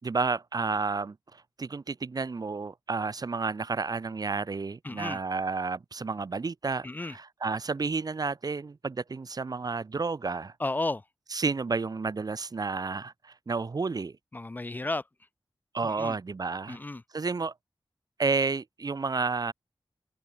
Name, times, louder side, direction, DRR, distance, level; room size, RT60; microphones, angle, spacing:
voice 1, 0.0-10.5 11.3-14.2 15.7-16.8 17.1-17.5 18.2-19.5, right 4 dB, 45° right, 0.6 m, -31 dB
voice 2, 4.8-5.2 6.8-7.2 10.6-11.0 14.3-15.0 15.8-16.2 16.7-17.0, left 2 dB, 20° left, 0.3 m, -33 dB
open air
wide cardioid pair, 75°, 9 cm